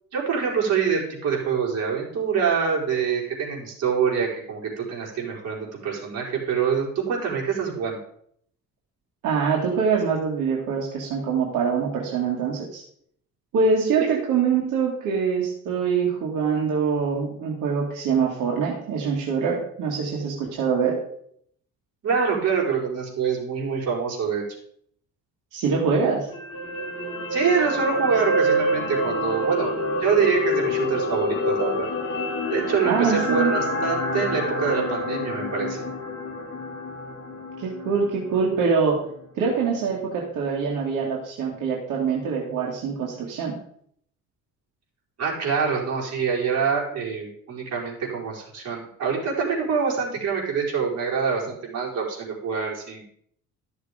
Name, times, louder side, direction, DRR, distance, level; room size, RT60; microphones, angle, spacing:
voice 1, 0.1-8.0 14.0-14.1 22.0-24.4 27.3-31.9 32.5-35.9 45.2-53.0, right 6 dB, 55° right, -3 dB, 4.8 m, -25 dB
voice 2, 9.2-12.8 13.5-21.0 25.5-26.3 32.9-33.6 37.6-39.0 39.4-43.6, right 5 dB, 80° right, -2 dB, 2.2 m, -24 dB
sound 1, 26.3-38.6 38.9-39.1, left 1 dB, 45° left, 2.6 m, -27 dB
13.5 x 6.6 x 5.1 m, 0.67 s
cardioid pair, 140°, 31 cm